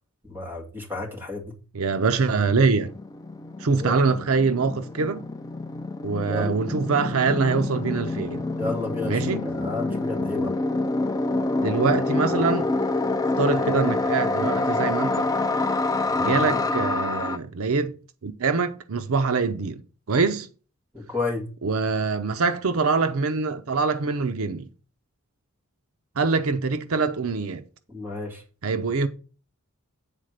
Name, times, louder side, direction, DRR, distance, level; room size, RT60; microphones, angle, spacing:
voice 1, 0.2-1.6 3.7-4.0 6.3-6.6 8.6-10.5 16.2-16.6 20.9-21.5 27.9-28.4, left 3 dB, 10° right, 2.1 m, -32 dB
voice 2, 1.7-2.9 3.6-5.2 6.0-8.4 9.1-9.4 11.6-12.7 13.4-15.3 16.2-17.9 18.2-19.8 20.1-20.5 21.6-24.7 26.2-27.6 28.6-29.1, right 4 dB, 70° right, 0.6 m, -24 dB
sound 1, 2.1-17.4, left 2 dB, 15° left, 0.4 m, -27 dB
9.1 x 4.1 x 6.4 m
head